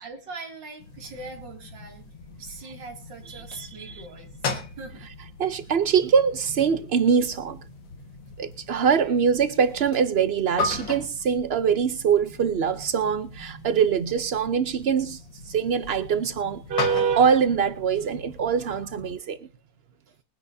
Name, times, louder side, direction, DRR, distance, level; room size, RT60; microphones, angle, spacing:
voice 1, 0.0-2.0 2.4-5.1 5.8-5.9 8.9-9.1, right 3 dB, 70° right, 3.3 m, -42 dB
sound 1, 0.8-19.1, left 4 dB, 80° left, 2.4 m, -38 dB
voice 2, 3.3-4.0 5.4-7.6 8.4-15.2 15.5-19.4, right 7 dB, 90° right, 0.5 m, -23 dB
21.5 x 10.5 x 2.7 m
omnidirectional pair, 2.0 m